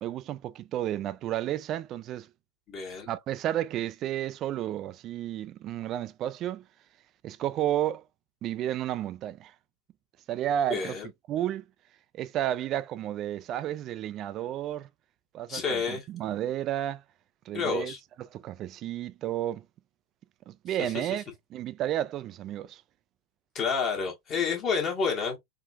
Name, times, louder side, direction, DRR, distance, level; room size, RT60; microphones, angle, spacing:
voice 1, 0.0-2.3 3.1-6.6 7.2-8.0 8.4-9.5 10.3-11.0 11.3-11.6 12.1-14.9 15.3-17.0 17.5-19.6 20.5-21.2 21.5-22.8, right 12 dB, 35° right, 0.3 m, -32 dB
voice 2, 2.7-3.1 10.7-11.1 15.5-16.0 17.5-18.0 20.7-20.8 23.5-25.4, left 5 dB, 30° left, 1.1 m, -29 dB
3.6 x 2.5 x 2.2 m
figure-of-eight pair, 90°, 0 cm